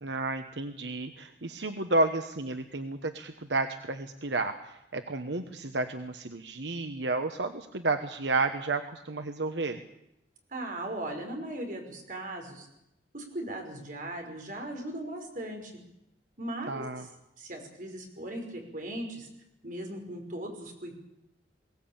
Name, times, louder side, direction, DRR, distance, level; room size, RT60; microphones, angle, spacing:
voice 1, 0.0-9.8 16.7-17.0, right 2 dB, 85° right, 8 dB, 1.2 m, -31 dB
voice 2, 10.5-12.7 13.1-15.7 16.4-16.8 17.4-19.3 19.6-20.9, right 1 dB, 50° right, 3 dB, 5.6 m, -38 dB
22.0 x 18.0 x 8.9 m, 0.86 s
head